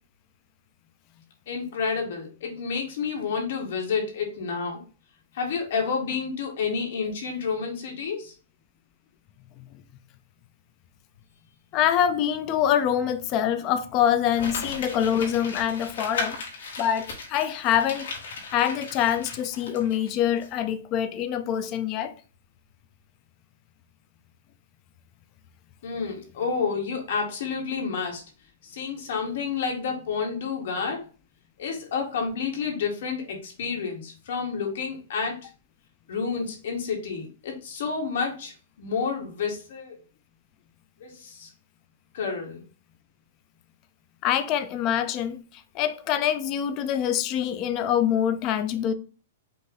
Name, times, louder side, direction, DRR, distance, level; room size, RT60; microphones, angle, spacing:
voice 1, 1.5-4.8 5.3-8.3 25.8-28.2 28.6-31.0 31.6-35.5 36.1-40.0 41.0-41.5 42.1-42.6, left 5 dB, 55° left, 1.7 m, -30 dB
voice 2, 11.7-16.4 16.8-18.1 18.5-22.1 44.2-45.4 45.7-48.9, left 9 dB, 25° left, 0.4 m, -25 dB
Crumpling crinkling, 14.3-20.1 20.4-20.5, left 4 dB, 75° left, 1.9 m, -36 dB
5.3 x 2.6 x 3.8 m
hypercardioid pair, 170°, 0 cm